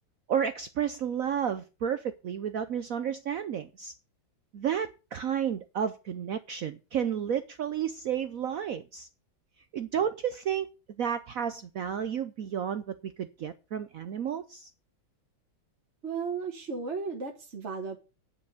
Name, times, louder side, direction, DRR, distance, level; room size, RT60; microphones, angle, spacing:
voice 1, 0.3-3.9 4.5-9.1 9.7-10.7 11.0-14.7, right 8 dB, 75° right, 0.8 m, -31 dB
voice 2, 16.0-18.0, right 5 dB, 35° right, 1.6 m, -34 dB
9.9 x 5.9 x 7.9 m
omnidirectional pair, 2.2 m